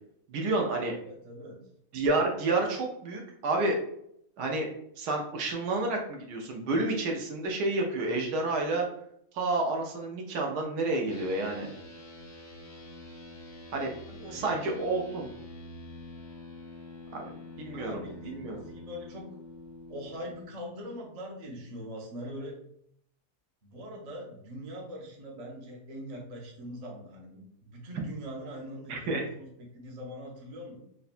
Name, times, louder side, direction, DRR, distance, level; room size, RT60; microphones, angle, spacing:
voice 1, 0.3-1.0 1.9-3.8 4.4-4.7 5.0-8.8 9.3-11.7 13.7-13.9 14.3-15.3 17.1-17.3 17.6-18.6 28.9-29.3, right 2 dB, 85° right, 1 dB, 1.3 m, -30 dB
voice 2, 1.0-1.6 14.1-15.3 17.7-19.3 19.9-22.6 23.6-30.8, equal, 70° right, -1 dB, 0.3 m, -42 dB
sound 1, 11.1-20.4, left 2 dB, 90° left, 1.4 m, -46 dB
3.7 x 2.1 x 2.5 m, 0.72 s
omnidirectional pair, 1.7 m